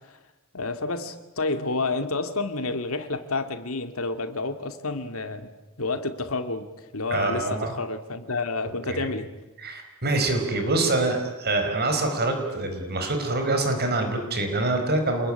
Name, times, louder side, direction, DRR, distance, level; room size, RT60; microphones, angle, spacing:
voice 1, 0.5-5.5 5.8-9.3, left 3 dB, 70° left, 8 dB, 2.5 m, -29 dB
voice 2, 7.1-7.7 8.9-9.1 9.6-15.3, right 2 dB, 50° right, 5 dB, 4.8 m, -25 dB
27.5 x 21.5 x 10.0 m, 1.1 s
head